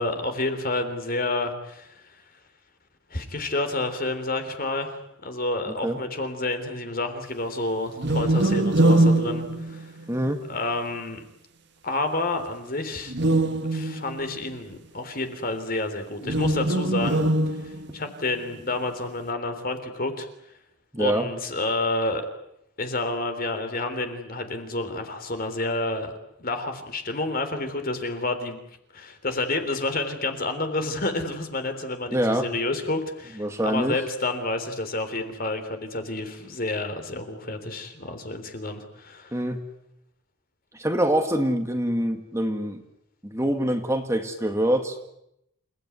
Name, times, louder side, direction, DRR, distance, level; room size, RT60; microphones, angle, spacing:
voice 1, 0.0-1.9 3.1-9.9 10.5-11.2 11.8-13.2 13.7-17.2 17.6-20.3 21.0-22.2 22.8-26.1 26.4-28.6 28.9-39.4, left 2 dB, 45° left, 7 dB, 3.5 m, -29 dB
sound 1, 8.0-10.3 13.1-14.4 16.2-18.1, right 2 dB, 55° right, 1.6 m, -23 dB
voice 2, 10.1-10.4 20.9-21.3 32.1-32.5 33.4-34.0 39.3-39.6 40.7-42.8 43.2-45.0, right 1 dB, 15° right, 5 dB, 1.7 m, -25 dB
29.0 x 17.0 x 9.6 m, 0.80 s
head